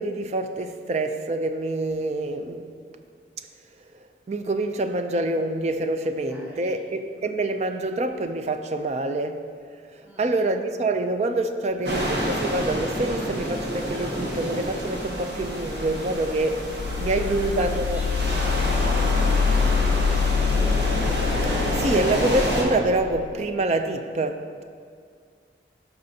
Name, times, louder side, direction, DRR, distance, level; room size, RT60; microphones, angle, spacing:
voice 1, 0.0-2.8 3.9-9.5 9.9-16.7 17.0-18.0 21.7-24.6, right 2 dB, 40° right, 8 dB, 0.4 m, -26 dB
voice 2, 6.3-6.8 10.0-10.3 16.8-20.1, equal, 10° right, -3 dB, 1.0 m, -43 dB
sound 1, 11.8-22.6, equal, 65° right, 1.5 m, -28 dB
sound 2, 16.6-23.3, left 6 dB, 70° left, 0.3 m, -25 dB
11.5 x 6.0 x 2.8 m, 2.2 s
head